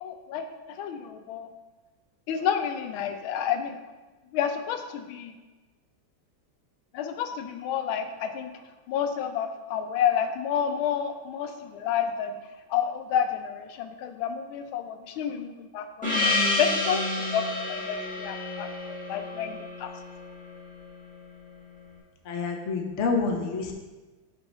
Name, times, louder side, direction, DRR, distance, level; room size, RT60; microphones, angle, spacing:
voice 1, 0.0-1.5 2.3-3.8 4.3-5.3 6.9-8.5 8.9-12.4 12.7-17.0 17.3-18.7 19.1-20.0, left 8 dB, 90° left, 8 dB, 1.4 m, -30 dB
Gong, 16.0-20.8, left 2 dB, 5° left, 1.7 m, -29 dB
voice 2, 22.3-23.7, left 4 dB, 55° left, 2 dB, 0.8 m, -28 dB
6.1 x 3.7 x 5.3 m, 1.2 s
omnidirectional pair, 2.2 m